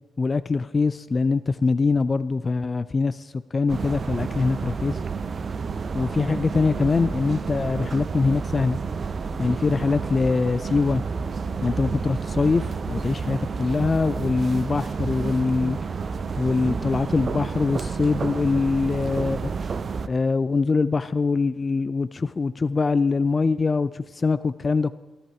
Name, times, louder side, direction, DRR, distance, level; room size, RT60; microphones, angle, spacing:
voice 1, 0.2-5.0 5.9-8.8 9.4-11.0 11.6-15.8 16.4-19.5 20.1-24.9, left 4 dB, 40° left, 15 dB, 0.3 m, -23 dB
sound 1, 3.7-20.1, right 5 dB, 50° right, 0.6 m, -30 dB
13.0 x 10.0 x 4.8 m, 1.2 s
hypercardioid pair, 40°, 0 cm